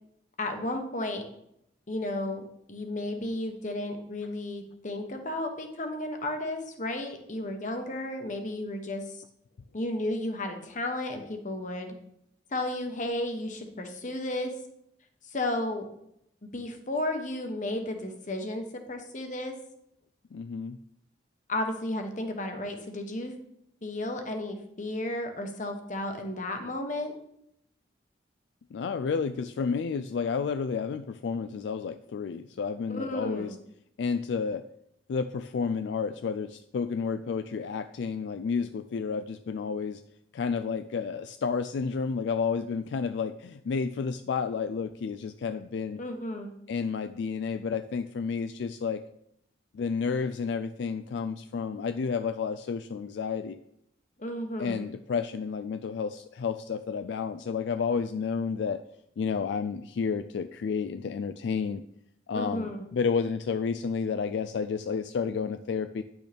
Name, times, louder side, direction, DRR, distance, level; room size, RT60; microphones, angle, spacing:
voice 1, 0.4-1.2 1.9-2.4 2.7-9.2 9.7-11.9 12.5-14.5 15.3-15.9 16.4-19.6 21.5-23.3 23.8-27.1 32.9-33.6 46.0-46.5 54.2-54.8 62.3-62.8, left 1 dB, 45° left, 5 dB, 1.1 m, -33 dB
voice 2, 20.3-20.8 28.7-33.5 34.0-34.6 35.1-40.0 40.3-46.0 46.7-49.0 49.7-53.6 54.6-58.8 59.2-61.8 62.3-66.0, left 5 dB, 70° left, 10 dB, 0.3 m, -31 dB
10.0 x 6.1 x 3.5 m, 0.77 s
head